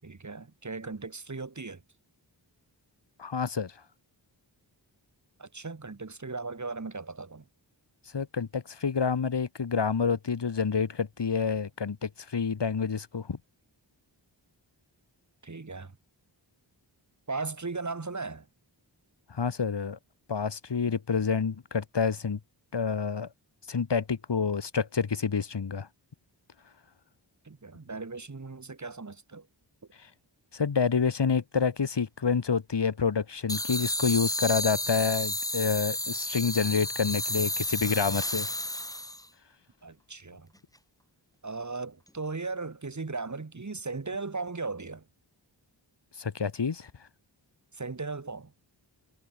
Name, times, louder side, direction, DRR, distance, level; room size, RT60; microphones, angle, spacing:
voice 1, 0.0-1.8 5.4-7.4 15.4-15.9 17.3-18.5 27.4-29.5 39.8-40.5 41.4-45.0 47.7-48.5, right 3 dB, 40° right, 5.1 m, -37 dB
voice 2, 3.2-3.7 8.1-13.4 19.3-20.0 20.3-22.4 22.7-23.3 23.7-25.9 30.5-38.5 46.2-46.9, left 5 dB, 65° left, 3.9 m, -28 dB
sound 1, 33.5-39.3, left 1 dB, 10° left, 3.5 m, -31 dB
wide cardioid pair, 105°, 44 cm